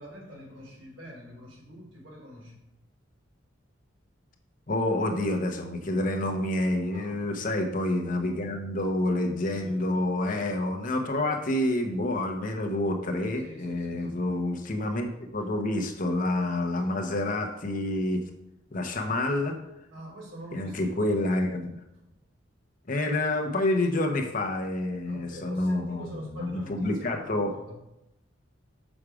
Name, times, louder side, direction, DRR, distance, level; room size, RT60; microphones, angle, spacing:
voice 1, 0.0-2.7 6.9-7.5 9.5-9.9 10.3-10.6 13.4-14.3 15.4-15.5 16.8-17.0 19.9-21.2 22.0-22.1 25.0-27.7, equal, 75° right, -3 dB, 3.3 m, -45 dB
voice 2, 4.7-18.2 18.7-19.6 20.5-21.7 22.9-27.5, left 1 dB, 40° left, 4 dB, 0.9 m, -28 dB
6.4 x 6.2 x 4.9 m, 0.88 s
head